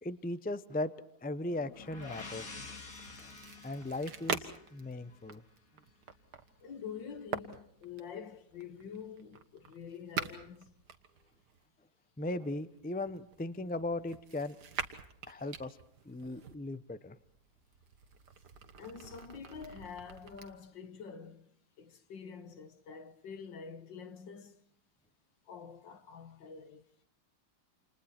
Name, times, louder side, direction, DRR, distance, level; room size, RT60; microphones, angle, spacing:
voice 1, 0.0-0.9 1.2-2.8 3.2-3.3 3.6-5.4 12.2-14.6 15.3-15.8 16.0-17.2, left 2 dB, 10° left, 0.4 m, -38 dB
sound 1, 1.5-5.3, left 4 dB, 45° left, 3.0 m, -49 dB
sound 2, 1.7-11.7 12.4-16.5 17.2-20.5, right 6 dB, 60° right, 2.0 m, -45 dB
voice 2, 6.6-10.7 18.8-21.5 21.8-24.7 25.5-26.8, left 6 dB, 70° left, 2.1 m, -47 dB
29.5 x 28.5 x 4.4 m
omnidirectional pair, 2.1 m